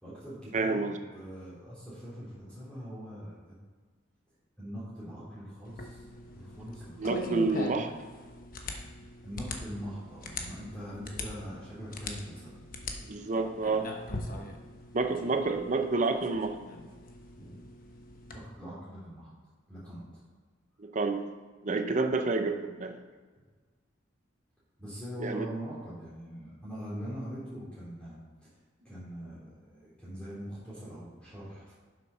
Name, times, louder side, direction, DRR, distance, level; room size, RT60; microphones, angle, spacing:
voice 1, 0.0-3.5 4.6-7.2 9.2-12.5 17.3-17.6 18.3-19.3 19.7-20.1 24.8-28.5 28.8-31.8, equal, 5° left, -11 dB, 2.9 m, -42 dB
voice 2, 0.5-1.0 7.0-7.9 13.1-13.9 14.9-16.6 20.8-21.3 21.6-23.0 25.2-25.5, right 3 dB, 40° right, 7 dB, 0.6 m, -29 dB
sound 1, 5.6-18.4, left 2 dB, 45° left, 1.1 m, -41 dB
7.5 x 6.7 x 5.6 m, 1.5 s
head